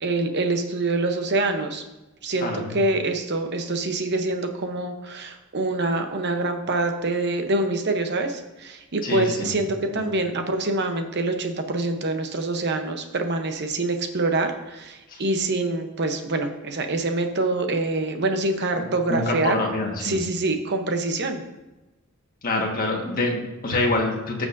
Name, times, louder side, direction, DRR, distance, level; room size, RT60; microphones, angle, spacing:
voice 1, 0.0-1.8 2.2-19.6 20.0-21.4, right 2 dB, 50° right, 6 dB, 0.9 m, -25 dB
voice 2, 2.4-2.7 9.0-9.5 9.9-10.1 15.1-15.2 18.8-20.2 22.4-24.5, left 2 dB, 40° left, 0 dB, 1.6 m, -26 dB
14.0 x 6.1 x 2.6 m, 1.0 s
head